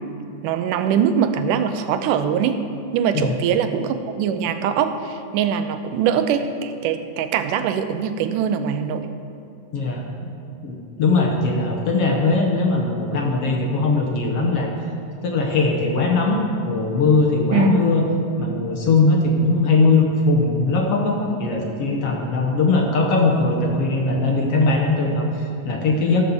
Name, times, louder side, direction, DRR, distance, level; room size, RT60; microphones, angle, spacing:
voice 1, 0.4-2.6 2.9-9.1 17.5-17.7, right 8 dB, 90° right, 9 dB, 2.3 m, -22 dB
voice 2, 9.7-10.0 10.6-14.7 15.2-18.0 18.4-26.2, left 3 dB, 60° left, 0 dB, 1.7 m, -20 dB
16.0 x 5.5 x 7.1 m, 2.7 s
omnidirectional pair, 3.6 m